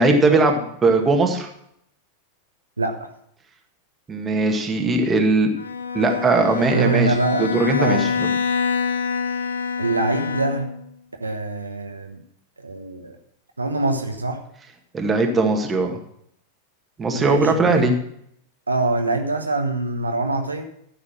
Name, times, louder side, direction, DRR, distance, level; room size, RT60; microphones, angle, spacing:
voice 1, 0.0-1.5 4.1-5.5 5.9-7.1 7.4-8.3 14.9-16.0 17.0-18.0, right 2 dB, 15° right, 3 dB, 1.8 m, -19 dB
Bowed string instrument, 5.6-10.9, left 5 dB, 80° left, 0.9 m, -26 dB
voice 2, 6.6-8.1 9.8-10.7 11.2-12.2 12.6-13.2 13.6-14.4 17.1-17.9 18.7-20.7, right 2 dB, 80° right, 4 dB, 1.1 m, -24 dB
13.0 x 7.0 x 6.0 m, 0.71 s
figure-of-eight pair, 90°, 0 cm